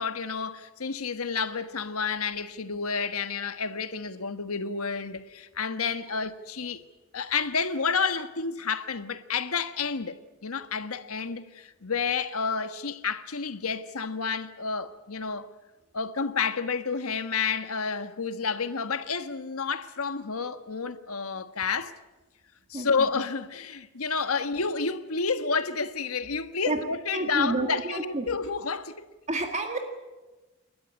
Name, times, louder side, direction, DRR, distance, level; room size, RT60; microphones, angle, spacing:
voice 1, 0.0-6.8 7.1-15.5 15.9-21.9 22.7-29.1, left 5 dB, 80° left, 1.4 m, -30 dB
voice 2, 22.7-23.1 26.7-26.8 27.1-28.3 29.3-29.8, right 2 dB, 30° right, 1.9 m, -29 dB
29.5 x 13.5 x 9.8 m
head